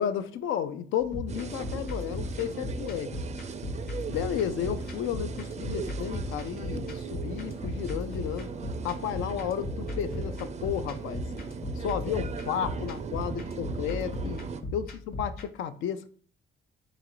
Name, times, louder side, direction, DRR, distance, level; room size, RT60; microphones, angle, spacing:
voice 1, 0.0-3.1 4.1-8.5 8.8-11.2 11.8-14.4 14.7-16.1, left 9 dB, 85° left, 0.4 m, -32 dB
sound 1, 1.0-15.5, left 1 dB, 50° left, 0.9 m, -37 dB
sound 2, 1.3-14.6, right 5 dB, 35° right, 0.4 m, -38 dB
4.0 x 2.5 x 4.4 m
cardioid pair, 90°, 20 cm